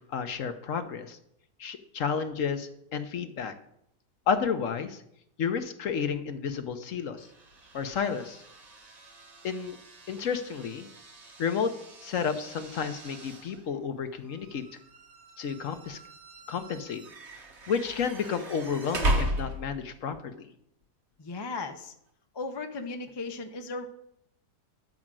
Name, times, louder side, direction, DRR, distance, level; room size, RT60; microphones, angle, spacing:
voice 1, 0.1-1.2 1.6-3.5 4.3-5.0 5.4-7.3 7.7-8.4 9.4-9.8 10.1-10.9 11.4-11.7 12.0-14.6 15.4-16.0 16.5-17.0 17.7-20.5, left 6 dB, 60° left, 8 dB, 1.1 m, -31 dB
sound 1, 7.2-20.0, right 1 dB, 45° right, 1.4 m, -37 dB
voice 2, 21.2-21.9 22.3-23.9, left 3 dB, 25° left, 5 dB, 0.5 m, -36 dB
11.0 x 5.0 x 7.4 m, 0.75 s
omnidirectional pair, 1.7 m